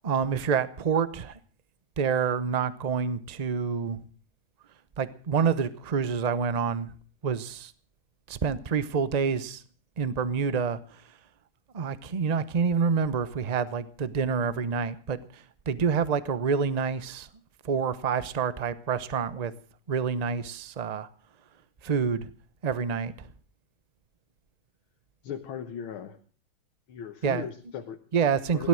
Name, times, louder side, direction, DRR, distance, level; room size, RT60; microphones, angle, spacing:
voice 1, 0.0-1.3 2.0-4.0 5.0-6.9 7.2-7.7 8.3-9.6 10.0-10.8 11.7-15.2 15.7-17.3 17.6-19.5 19.9-21.1 21.8-22.3 22.6-23.1 27.2-27.4 28.1-28.7, right 6 dB, 45° right, 15 dB, 0.5 m, -27 dB
voice 2, 25.2-26.2 26.9-28.0 28.5-28.7, left 8 dB, 90° left, 5 dB, 2.0 m, -37 dB
17.5 x 12.0 x 6.3 m, 0.42 s
omnidirectional pair, 2.2 m